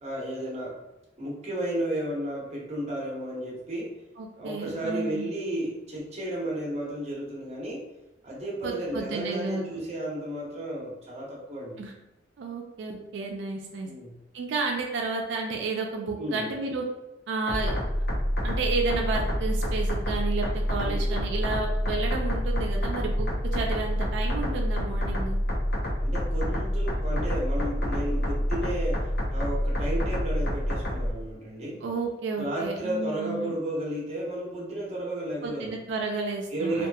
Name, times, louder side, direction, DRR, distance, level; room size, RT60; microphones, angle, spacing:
voice 1, 0.0-0.8 1.2-4.0 4.4-7.9 8.2-11.8 13.8-14.1 16.1-16.5 20.8-21.0 26.0-31.8 32.3-35.8 36.5-36.9, right 1 dB, 40° right, -4 dB, 0.8 m, -33 dB
voice 2, 4.2-5.3 8.6-9.6 11.8-11.9 12.4-13.9 14.3-16.8 17.3-17.8 18.4-25.4 31.8-33.5 35.4-36.9, right 3 dB, 70° right, 1 dB, 0.4 m, -31 dB
sound 1, 17.5-31.1, equal, 60° left, 0.8 m, -27 dB
2.8 x 2.4 x 2.2 m, 0.95 s
head